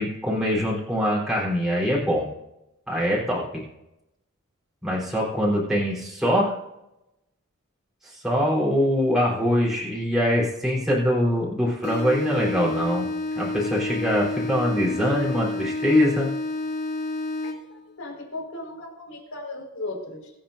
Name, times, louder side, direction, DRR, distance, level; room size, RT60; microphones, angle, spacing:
voice 1, 0.0-2.3 2.9-3.6 4.8-6.5 8.0-13.1 13.4-16.3, equal, ahead, -6 dB, 4.0 m, -23 dB
sound 1, 11.8-17.8, left 2 dB, 45° left, 3.1 m, -30 dB
voice 2, 17.4-20.3, left 2 dB, 75° left, 0 dB, 4.9 m, -36 dB
24.0 x 8.8 x 2.6 m, 0.90 s
head